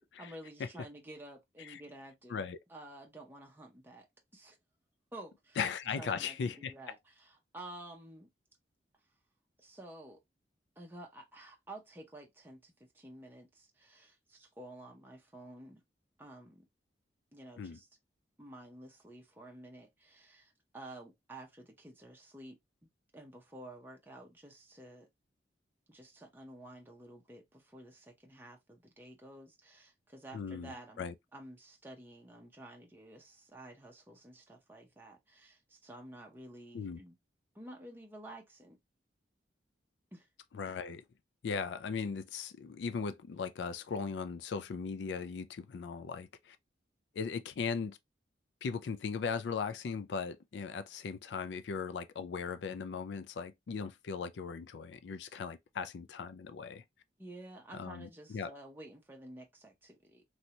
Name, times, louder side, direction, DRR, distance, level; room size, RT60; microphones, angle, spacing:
voice 1, 0.2-2.4 2.7-4.1 4.3-4.6 5.1-5.6 6.0-8.3 9.6-10.2 10.8-15.8 16.2-16.6 17.3-17.9 18.4-22.6 23.1-25.1 25.9-37.1 37.5-38.8 40.1-40.3 57.2-60.4, right 1 dB, 10° right, 0.7 m, -51 dB
voice 2, 5.6-6.7 17.6-17.8 30.3-31.1 36.7-37.0 40.5-41.0 41.4-46.6 47.1-48.0 48.6-56.8 57.7-58.5, left 5 dB, 80° left, 0.4 m, -38 dB
3.2 x 2.7 x 2.8 m
head